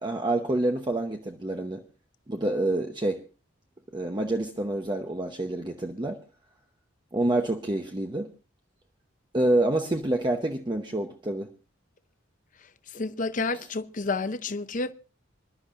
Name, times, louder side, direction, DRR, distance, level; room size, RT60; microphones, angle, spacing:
voice 1, 0.0-1.8 2.3-3.2 3.9-6.2 7.1-8.3 9.3-11.5 13.5-13.7, right 1 dB, 25° right, 0.9 m, -27 dB
voice 2, 12.9-14.9, left 3 dB, 40° left, 0.7 m, -30 dB
26.5 x 12.0 x 2.5 m
head